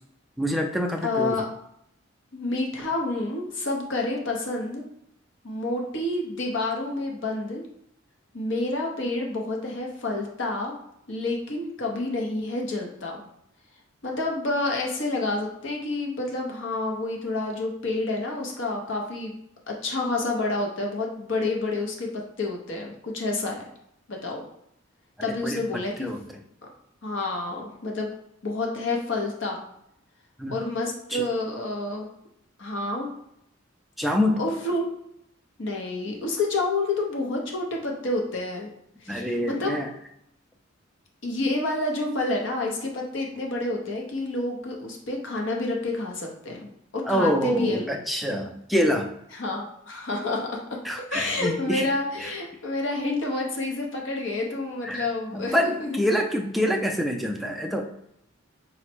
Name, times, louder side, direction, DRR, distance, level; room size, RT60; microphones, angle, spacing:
voice 1, 0.4-1.4 25.4-25.6 26.0-26.2 30.4-30.6 31.1-31.2 34.0-34.4 39.1-39.9 47.1-49.1 50.8-51.9 52.2-52.3 54.8-55.0 55.3-57.9, equal, ahead, 2 dB, 0.3 m, -26 dB
voice 2, 1.0-1.5 2.3-4.8 5.4-7.6 8.3-10.8 11.1-13.2 14.0-19.3 19.7-23.6 24.1-24.4 25.2-26.1 27.0-28.1 28.4-29.6 30.5-32.1 32.6-33.1 34.4-34.9 35.6-38.7 39.0-39.8 41.2-47.9 49.3-50.8 51.1-56.0 57.4-57.5, left 2 dB, 65° left, 0 dB, 0.7 m, -29 dB
4.0 x 2.0 x 4.4 m, 0.77 s
head